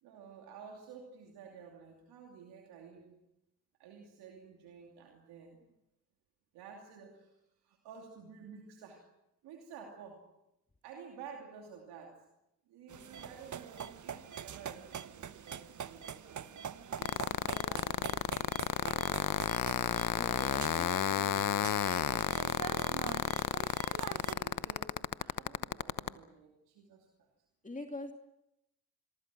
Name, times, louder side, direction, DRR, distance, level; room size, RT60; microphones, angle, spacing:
voice 1, 0.0-3.2 3.8-5.7 6.5-7.4 7.6-9.1 9.4-10.3 10.8-12.2 12.7-16.5 17.0-19.6 20.1-23.5 24.1-27.3, right 6 dB, 90° right, 1 dB, 2.7 m, -52 dB
sound 1, 12.9-24.3, right 8 dB, 50° right, 1.1 m, -44 dB
sound 2, 17.0-26.1, left 10 dB, 60° left, 1.0 m, -31 dB
voice 2, 20.1-21.0 27.6-28.1, left 2 dB, 20° left, 4 dB, 2.8 m, -43 dB
26.0 x 23.5 x 6.2 m, 0.85 s
supercardioid pair, 45°, 37 cm